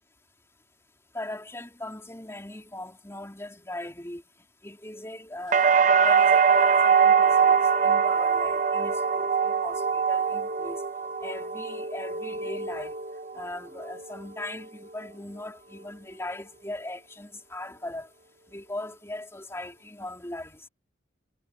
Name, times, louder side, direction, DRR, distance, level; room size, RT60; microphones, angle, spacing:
voice 1, 1.1-4.2 4.6-10.8 11.2-13.0 13.3-18.1 18.5-20.7, left 1 dB, 15° left, 3.6 m, -39 dB
sound 1, 5.5-13.4 13.8-14.5, right 6 dB, 45° right, 0.8 m, -23 dB
head